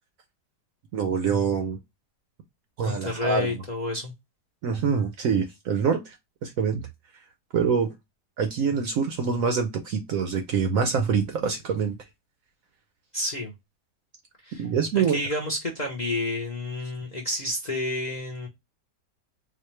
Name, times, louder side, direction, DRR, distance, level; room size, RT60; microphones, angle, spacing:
voice 1, 0.9-1.8 2.8-3.6 4.6-6.2 6.4-6.8 7.5-7.9 8.4-11.9 14.6-15.2, right 6 dB, 65° right, 0.9 m, -25 dB
voice 2, 2.8-4.1 13.1-13.5 14.4-14.6 15.1-18.5, left 2 dB, 35° left, 0.7 m, -30 dB
4.1 x 2.4 x 3.1 m
omnidirectional pair, 1.8 m